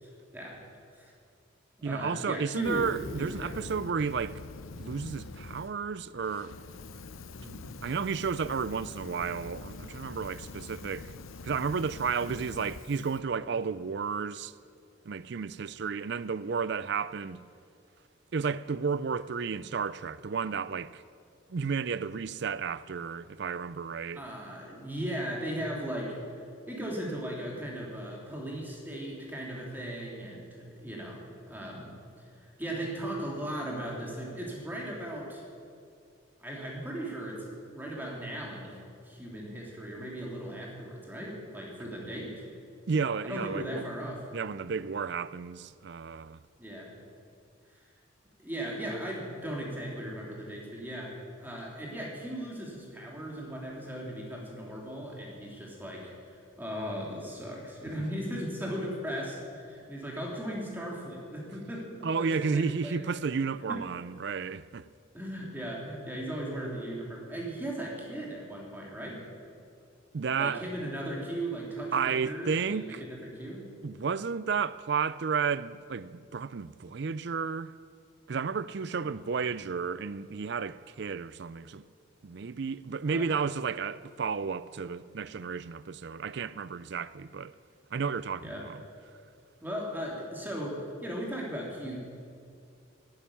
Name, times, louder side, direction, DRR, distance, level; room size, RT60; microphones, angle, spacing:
voice 1, 0.0-0.6 1.0-1.1 1.8-2.9 3.2-3.6 7.4-7.7 24.1-26.2 26.7-31.2 31.5-35.4 36.4-38.8 39.0-42.4 43.2-44.2 46.6-46.9 48.4-56.1 56.6-63.0 63.7-63.8 65.1-69.2 70.3-73.7 79.0-79.2 83.0-83.3 88.4-88.6 89.6-92.0, right 1 dB, 10° right, 3.1 m, -37 dB
voice 2, 1.8-4.4 4.8-6.5 7.5-11.1 11.4-14.5 15.1-17.4 18.3-21.0 21.5-24.2 42.9-43.9 44.3-46.4 62.0-64.9 70.1-70.6 71.9-73.1 73.8-77.7 78.3-81.8 82.2-87.5 87.9-88.8, right 5 dB, 55° right, 0.4 m, -32 dB
Fire, 2.6-5.7 6.1-13.2, left 3 dB, 90° left, 0.7 m, -44 dB
11.5 x 11.5 x 10.0 m
head